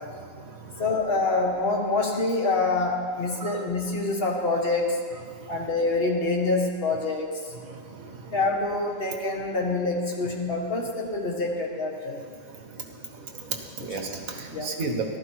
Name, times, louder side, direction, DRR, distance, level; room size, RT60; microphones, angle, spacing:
voice 1, 0.2-0.9 3.4-3.6 5.3-5.5 7.6-8.4 12.5-15.2, right 3 dB, 70° right, 4 dB, 1.7 m, -35 dB
voice 2, 0.8-5.0 5.5-7.3 8.3-12.2 13.8-13.9 14.5-14.7, left 3 dB, 40° left, 0 dB, 1.8 m, -26 dB
14.5 x 12.5 x 4.6 m, 2.3 s
omnidirectional pair, 1.5 m